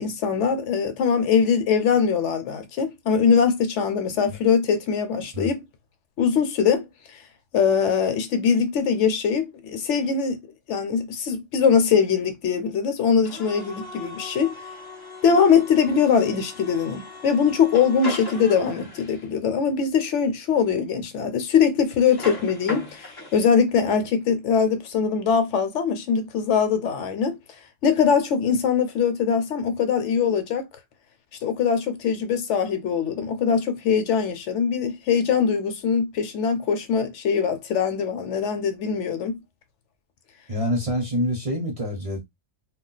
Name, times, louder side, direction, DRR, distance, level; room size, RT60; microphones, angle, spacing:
voice 1, 0.0-5.6 6.2-6.8 7.1-7.2 7.5-10.4 10.7-14.5 15.2-27.4 27.8-30.6 31.4-39.4, left 6 dB, 70° left, 0.9 m, -22 dB
sound 1, 13.2-19.3 22.0-23.4, left 2 dB, 25° left, 0.5 m, -38 dB
voice 2, 40.5-42.2, equal, 35° right, 0.6 m, -26 dB
2.3 x 2.3 x 3.8 m
omnidirectional pair, 1.3 m